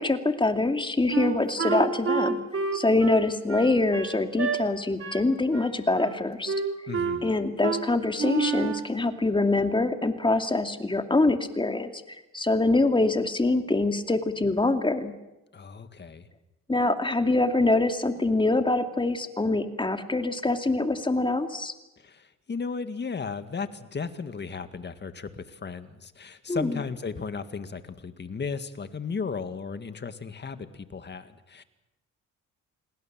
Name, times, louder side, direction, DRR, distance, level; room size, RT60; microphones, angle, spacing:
voice 1, 0.0-2.4 2.7-6.5 7.2-15.1 16.7-21.7 26.5-26.7, left 2 dB, 15° left, 7 dB, 2.5 m, -24 dB
Wind instrument woodwind instrument, 1.1-4.6 5.0-5.3 5.5-6.2 6.5-7.2 7.6-7.8 8.2-8.9, right 5 dB, 45° right, 3.9 m, -29 dB
voice 2, 6.9-7.3 15.5-16.3 22.0-31.6, left 5 dB, 35° left, 10 dB, 2.0 m, -35 dB
28.0 x 19.5 x 7.6 m, 0.97 s
cardioid pair, 90°, 30 cm